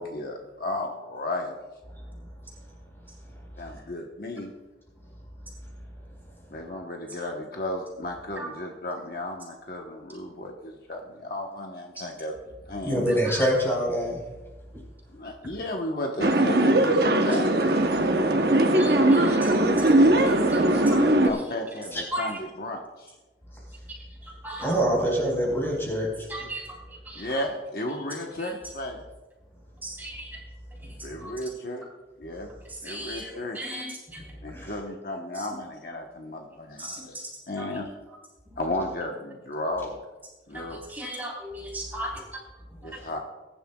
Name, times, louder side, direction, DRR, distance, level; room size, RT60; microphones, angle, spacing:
voice 1, 0.0-1.6 3.6-4.5 6.5-12.4 12.7-13.0 15.1-17.8 21.1-23.1 27.2-29.0 31.0-31.9 32.2-32.5 32.8-33.6 34.4-37.2 37.5-37.9 38.6-40.0 40.5-40.8 42.8-43.2, left 1 dB, 55° left, 1 dB, 1.1 m, -34 dB
voice 2, 12.8-14.2 21.9-22.0 24.6-26.1 34.5-34.7, equal, 15° left, -2 dB, 4.4 m, -25 dB
sound 1, 16.2-21.3, right 1 dB, 60° right, 1.0 m, -20 dB
voice 3, 18.7-19.5 20.3-21.0 22.1-22.3 24.2-24.7 26.3-26.6 27.1-27.3 29.8-30.3 31.2-31.3 32.8-34.2 36.8-37.0 37.6-37.7 40.5-40.6 40.9-42.1, right 1 dB, 10° right, -4 dB, 3.8 m, -36 dB
21.0 x 11.0 x 2.3 m, 1.2 s
head